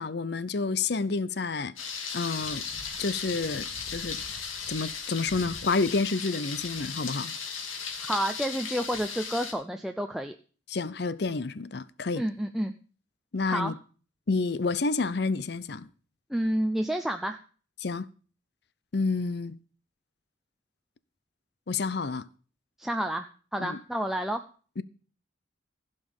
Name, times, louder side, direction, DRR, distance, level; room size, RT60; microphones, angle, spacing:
voice 1, 0.0-1.7 2.1-2.6 3.0-4.2 4.7-7.3 10.7-12.3 13.3-13.7 14.3-15.9 17.8-18.1 18.9-19.6 21.7-22.3 23.6-23.8 24.8-24.9, left 4 dB, 55° left, 0.6 m, -29 dB
Thunder, 1.8-9.5, left 5 dB, 90° left, 2.4 m, -36 dB
voice 2, 8.0-10.4 12.2-12.7 13.5-13.7 16.3-17.4 22.8-23.3 23.5-24.4, right 1 dB, ahead, 0.5 m, -29 dB
15.5 x 5.4 x 7.1 m
head